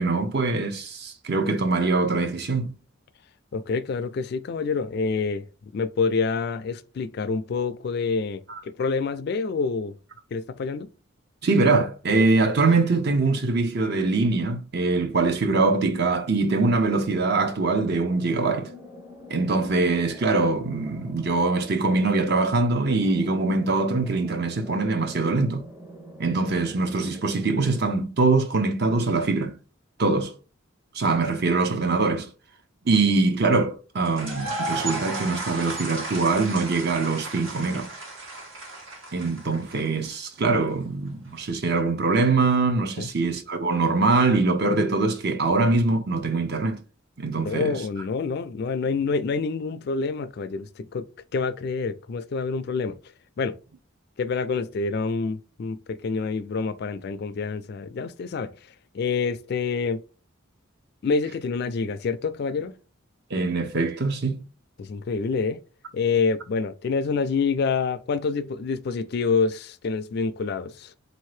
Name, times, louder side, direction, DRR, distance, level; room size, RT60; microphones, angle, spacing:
voice 1, 0.0-2.7 8.5-8.6 11.4-18.7 19.3-25.6 26.2-29.6 30.0-30.3 30.9-32.3 32.8-37.9 39.1-46.8 47.2-47.8 63.3-64.5, right 3 dB, 50° right, 0.7 m, -23 dB
voice 2, 3.5-5.5 5.7-10.0 10.3-10.9 43.0-43.1 47.4-51.1 51.3-53.0 53.4-53.6 54.2-58.5 58.9-60.0 61.0-62.7 64.8-65.6 65.9-70.9, left 4 dB, 50° left, 0.3 m, -27 dB
sound 1, 16.9-27.9, equal, 15° right, 0.6 m, -45 dB
sound 2, 34.1-40.0, right 2 dB, 90° right, 1.7 m, -34 dB
3.8 x 2.7 x 3.2 m
head